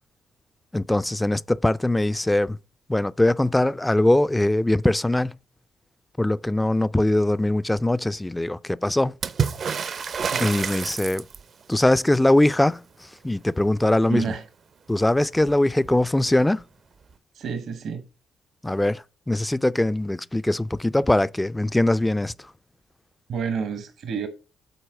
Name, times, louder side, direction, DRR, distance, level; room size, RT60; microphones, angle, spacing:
voice 1, 0.7-2.6 2.9-5.4 6.2-9.1 10.4-11.2 11.7-12.8 13.2-14.2 14.9-16.6 18.6-22.3, left 1 dB, 10° left, 0.3 m, -21 dB
Water / Splash splatter, 9.2-11.6 14.9-15.0 15.2-16.0 17.1-17.2, right 6 dB, 50° right, 0.5 m, -28 dB
voice 2, 14.1-14.4 17.3-18.0 23.3-24.3, right 5 dB, 70° right, 0.9 m, -29 dB
7.9 x 4.1 x 4.8 m
cardioid pair, 90°, 0 cm